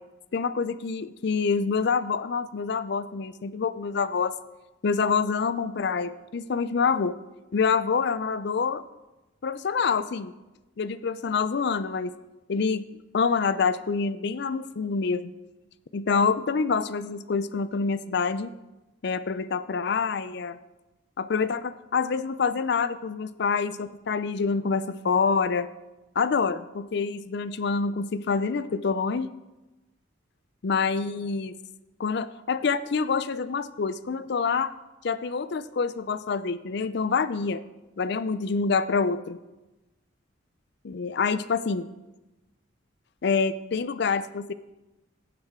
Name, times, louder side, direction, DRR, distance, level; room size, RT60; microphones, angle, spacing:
voice 1, 0.3-4.3 4.8-7.1 7.5-8.8 9.4-10.3 10.8-12.1 12.5-12.8 13.1-15.3 15.9-18.5 19.0-20.6 21.2-25.7 26.2-29.3 30.6-31.5 32.0-34.7 35.0-37.6 38.0-39.4 40.8-41.8 43.2-44.5, left 5 dB, 60° left, 15 dB, 0.4 m, -26 dB
15.5 x 7.6 x 3.7 m, 1.1 s
head